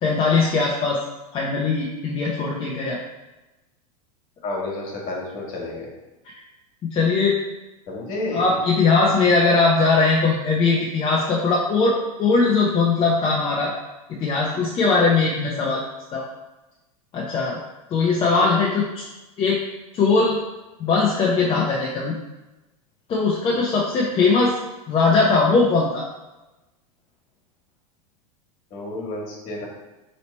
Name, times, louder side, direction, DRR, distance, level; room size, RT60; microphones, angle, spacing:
voice 1, 0.0-1.0 1.3-3.0 6.9-7.4 8.3-13.7 14.1-15.8 16.1-16.2 17.1-17.6 17.9-19.0 19.4-19.6 19.9-20.4 20.8-22.1 23.1-24.6 24.9-26.0, left 4 dB, 30° left, -4 dB, 0.6 m, -20 dB
voice 2, 4.4-5.9 7.9-8.5 18.4-18.5 28.7-29.7, left 2 dB, 45° left, -3 dB, 1.5 m, -30 dB
3.1 x 2.9 x 4.2 m, 1.0 s
hypercardioid pair, 105°, 19 cm